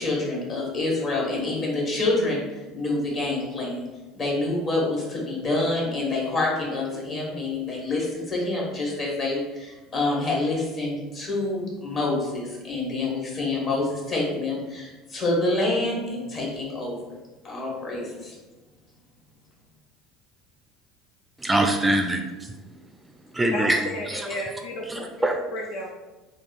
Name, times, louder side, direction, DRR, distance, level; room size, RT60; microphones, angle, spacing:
voice 1, 0.0-3.9 4.1-17.0 17.4-18.3, left 2 dB, 40° left, -3 dB, 1.5 m, -27 dB
voice 2, 21.4-22.5 23.3-24.3 24.9-25.4, right 1 dB, 15° right, 4 dB, 0.4 m, -24 dB
voice 3, 23.5-25.9, left 1 dB, 60° left, -1 dB, 0.5 m, -33 dB
3.5 x 2.3 x 4.1 m, 1.2 s
hypercardioid pair, 70°, 0 cm